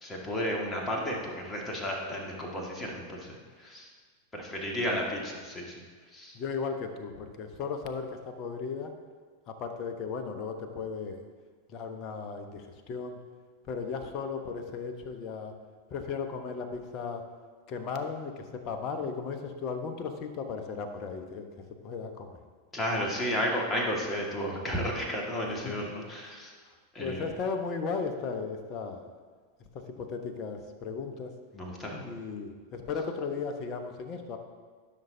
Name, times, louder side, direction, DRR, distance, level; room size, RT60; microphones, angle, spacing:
voice 1, 0.0-3.9 4.3-5.8 6.1-6.3 22.7-26.5 26.9-27.2 31.5-32.1, equal, 15° left, -1 dB, 1.8 m, -33 dB
voice 2, 6.3-8.9 9.5-11.3 11.7-13.2 13.7-15.5 15.9-17.2 17.7-21.5 21.8-22.4 25.5-25.9 27.0-29.1 29.7-31.3 32.0-34.4, left 5 dB, 35° left, 6 dB, 1.0 m, -36 dB
14.5 x 6.4 x 2.7 m, 1.5 s
figure-of-eight pair, 90°, 0 cm